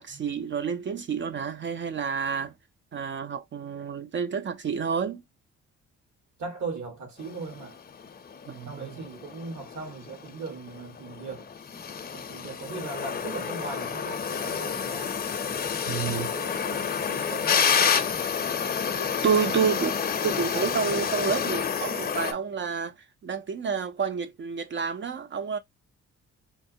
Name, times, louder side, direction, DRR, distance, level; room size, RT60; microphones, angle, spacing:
voice 1, 0.0-2.5 2.9-5.2 8.5-8.9 15.9-16.3 19.2-19.9 20.2-22.9 23.2-25.6, right 6 dB, 40° right, 0.4 m, -29 dB
voice 2, 6.4-7.8 8.6-11.5 12.1-15.2 16.1-18.0 19.3-19.8 20.2-20.3 21.2-21.4, right 4 dB, 70° right, 1.7 m, -39 dB
sound 1, 7.2-22.3, left 7 dB, 30° left, 0.5 m, -29 dB
4.5 x 2.1 x 2.6 m
cardioid pair, 90°, 30 cm